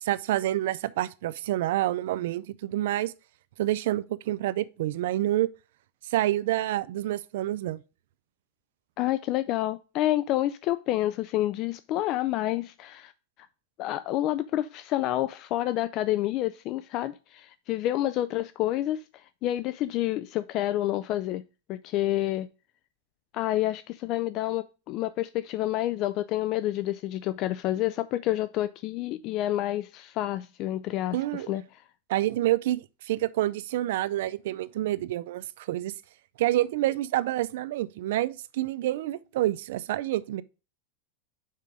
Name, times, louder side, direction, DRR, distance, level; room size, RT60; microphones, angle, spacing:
voice 1, 0.0-3.1 3.6-5.5 6.0-7.8 31.1-31.5 32.1-35.9 36.4-40.4, right 14 dB, 70° right, 0.4 m, -28 dB
voice 2, 9.0-13.1 13.8-21.4 21.7-22.5 23.3-31.6, left 14 dB, 40° left, 0.3 m, -29 dB
5.6 x 5.1 x 4.8 m
supercardioid pair, 140°, 0 cm